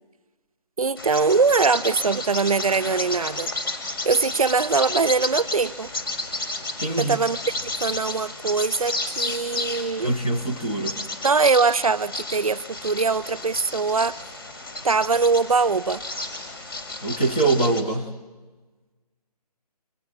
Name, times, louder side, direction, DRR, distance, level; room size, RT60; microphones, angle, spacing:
voice 1, 0.8-3.5 4.0-5.9 7.0-7.5 7.8-10.1 11.2-14.2 14.8-16.0, right 4 dB, 60° right, 0.8 m, -22 dB
Bird vocalization bird call bird song, 1.0-17.8, left 2 dB, 35° left, 5.5 m, -32 dB
voice 2, 6.8-7.1 10.0-11.0 17.0-18.0, right 2 dB, 10° left, 0.9 m, -23 dB
29.5 x 27.0 x 7.3 m
hypercardioid pair, 175°, 21 cm